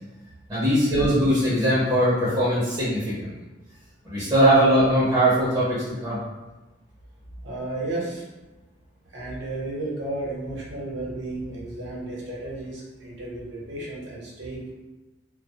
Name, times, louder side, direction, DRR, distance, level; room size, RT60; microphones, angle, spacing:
voice 1, 0.5-3.3 4.0-6.2, right 1 dB, 20° right, -10 dB, 0.6 m, -21 dB
voice 2, 7.4-8.3 9.1-14.7, right 2 dB, 70° right, -5 dB, 0.8 m, -33 dB
2.2 x 2.0 x 2.7 m, 1.1 s
head